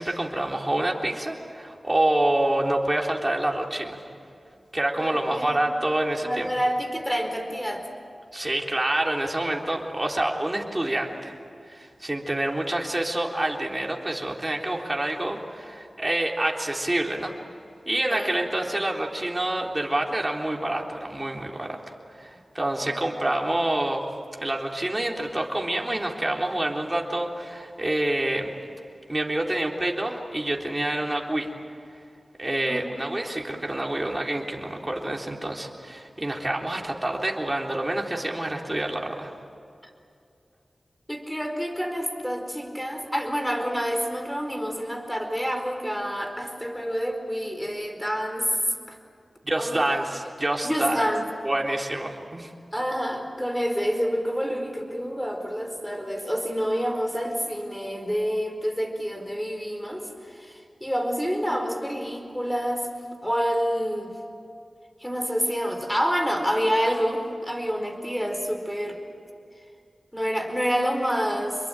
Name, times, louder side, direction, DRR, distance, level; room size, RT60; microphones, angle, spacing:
voice 1, 0.0-4.0 4.7-6.5 8.3-11.4 11.7-17.3 17.9-21.8 22.2-24.1 24.4-28.5 29.1-31.5 32.4-39.3 49.4-51.1 51.4-52.5, right 1 dB, 25° right, 1 dB, 3.6 m, -27 dB
voice 2, 5.0-5.6 6.2-7.9 18.1-18.3 22.8-22.9 32.7-32.9 41.1-48.5 48.9-49.0 49.6-49.9 50.6-51.2 52.7-62.9 63.2-64.1 65.0-69.0 70.1-71.6, equal, 5° left, 4 dB, 4.5 m, -28 dB
27.5 x 22.5 x 9.0 m, 2.5 s
wide cardioid pair, 60°, 0 cm